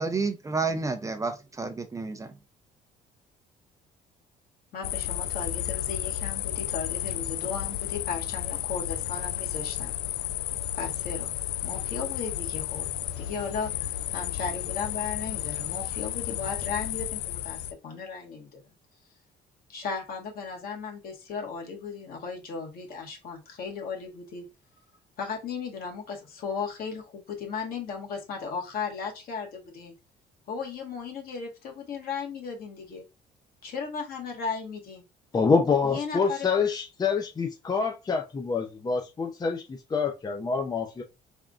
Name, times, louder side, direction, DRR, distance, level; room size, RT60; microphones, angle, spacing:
voice 1, 0.0-2.3, right 4 dB, 20° right, 0.5 m, -30 dB
voice 2, 4.7-9.9 10.7-11.3 11.6-12.9 13.2-18.6 19.7-24.4 25.2-29.9 30.5-33.0 33.6-35.0 35.8-36.5, left 5 dB, 60° left, 1.5 m, -36 dB
sound 1, 4.8-17.7, left 13 dB, 80° left, 0.4 m, -32 dB
voice 3, 35.3-41.0, left 5 dB, 25° left, 0.6 m, -26 dB
3.6 x 3.5 x 2.5 m
cardioid pair, 110°, 17 cm